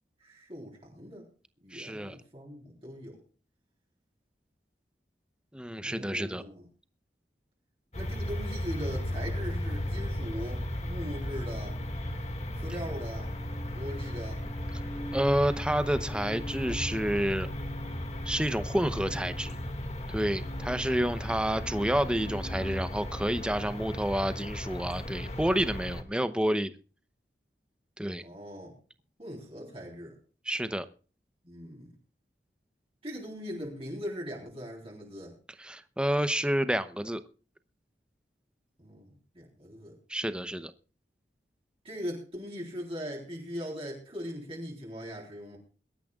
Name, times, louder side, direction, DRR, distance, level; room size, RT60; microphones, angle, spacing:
voice 1, 0.2-1.3 1.6-3.2 5.8-6.6 8.0-11.8 12.6-13.3 13.7-14.4 28.2-28.7 29.2-30.1 31.4-31.9 33.0-35.3 38.8-39.9 41.8-45.6, equal, 35° right, -2 dB, 3.8 m, -40 dB
voice 2, 1.7-2.2 5.5-6.4 15.1-17.5 18.2-19.6 20.1-26.7 28.0-28.2 30.4-30.9 35.6-37.2 40.1-40.7, equal, 5° right, 11 dB, 0.8 m, -29 dB
sound 1, 7.9-26.0, left 1 dB, 40° left, 2.0 m, -35 dB
22.5 x 12.5 x 2.4 m, 0.38 s
head